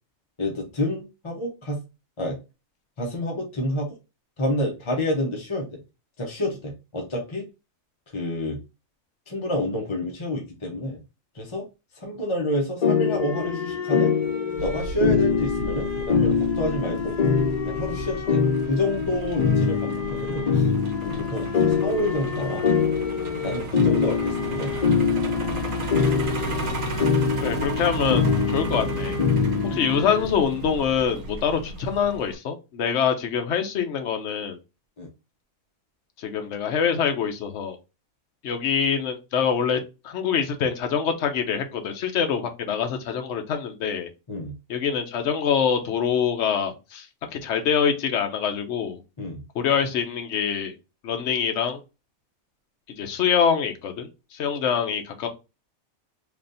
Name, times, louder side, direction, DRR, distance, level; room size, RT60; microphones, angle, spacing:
voice 1, 0.4-1.8 2.2-2.4 3.0-3.9 4.4-5.7 6.2-7.4 8.1-8.6 9.3-11.0 11.3-11.7 11.9-14.1 14.6-17.2 17.6-20.7 21.0-22.6 23.4-24.9 29.5-29.8 35.0-35.1 44.3-44.5 49.2-49.4, left 1 dB, 30° left, 0.6 m, -28 dB
sound 1, 12.8-30.3, left 6 dB, 90° left, 0.3 m, -24 dB
Truck, 14.6-32.3, right 3 dB, 70° right, 1.2 m, -34 dB
voice 2, 27.4-29.2 29.6-34.6 36.2-37.8 38.4-39.8 40.0-44.1 44.7-47.1 47.3-49.0 49.5-50.7 51.0-51.8 53.0-55.3, left 7 dB, 60° left, 1.0 m, -25 dB
3.4 x 2.5 x 3.9 m
omnidirectional pair, 1.5 m